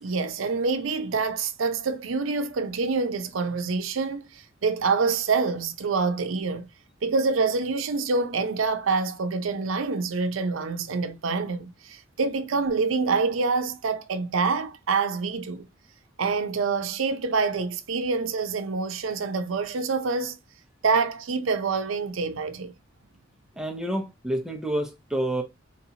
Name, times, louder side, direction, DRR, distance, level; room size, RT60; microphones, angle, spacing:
voice 1, 0.0-6.7 7.0-15.7 16.2-20.4 20.8-22.7, right 4 dB, 90° right, 0.6 m, -26 dB
voice 2, 23.6-25.4, right 1 dB, 5° right, 0.6 m, -28 dB
4.6 x 2.7 x 2.8 m
head